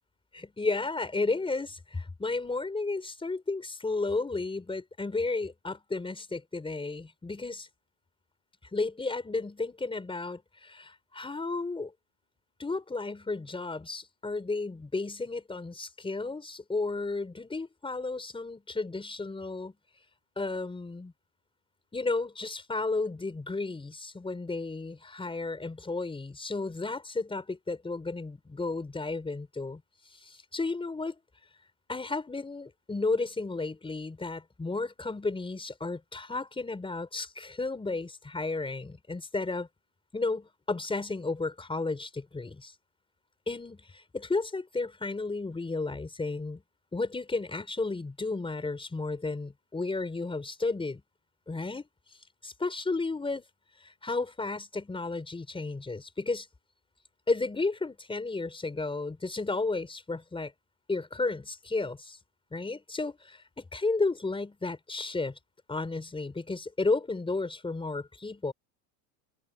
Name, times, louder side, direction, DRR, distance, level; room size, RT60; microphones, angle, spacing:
voice 1, 0.3-7.7 8.7-11.9 12.6-19.7 20.4-21.1 21.9-29.8 30.2-31.2 31.9-39.7 40.1-42.7 43.5-46.6 46.9-51.0 51.5-51.8 52.4-53.4 53.8-56.5 57.3-60.5 60.9-62.2 62.5-65.3 65.7-68.5, left 3 dB, 10° left, 4.6 m, -33 dB
cardioid pair, 150°, 49 cm